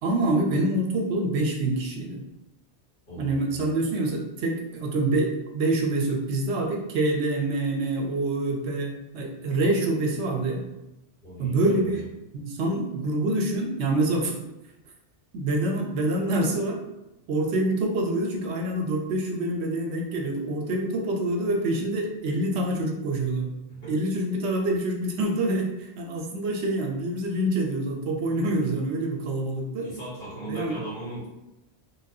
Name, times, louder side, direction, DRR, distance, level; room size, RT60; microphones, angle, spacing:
voice 1, 0.0-2.2 3.2-10.7 11.4-12.0 12.3-14.4 15.3-16.8 17.3-23.5 23.9-29.9 30.5-30.8, right 2 dB, 75° right, 1 dB, 0.8 m, -26 dB
voice 2, 3.1-3.6 11.2-12.0 23.8-23.9 29.8-31.3, right 1 dB, 55° left, -7 dB, 1.4 m, -38 dB
3.4 x 2.3 x 2.6 m, 0.95 s
omnidirectional pair, 1.2 m